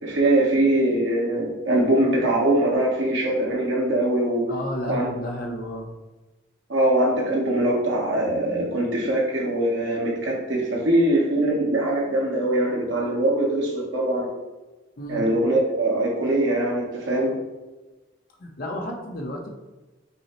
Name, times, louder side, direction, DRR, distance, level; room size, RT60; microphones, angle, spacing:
voice 1, 0.0-4.5 4.9-5.1 6.7-14.3 15.1-17.3, right 1 dB, 55° right, -2 dB, 1.0 m, -22 dB
voice 2, 4.5-5.9 15.0-15.2 18.4-19.5, left 1 dB, 45° left, 2 dB, 0.6 m, -31 dB
5.4 x 2.0 x 4.2 m, 1.1 s
head